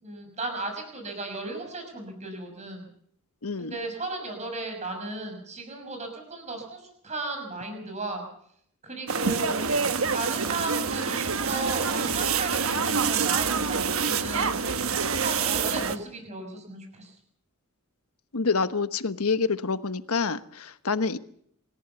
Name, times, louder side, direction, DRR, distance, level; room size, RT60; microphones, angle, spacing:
voice 1, 0.0-2.9 3.6-8.2 8.8-9.6 10.1-17.1, right 2 dB, 30° right, 4 dB, 6.2 m, -35 dB
voice 2, 3.4-3.7 18.3-21.2, left 4 dB, 75° left, 12 dB, 1.2 m, -27 dB
sound 1, 9.1-16.0, right 5 dB, 65° right, 1.3 m, -26 dB
27.5 x 15.0 x 7.0 m, 0.67 s
head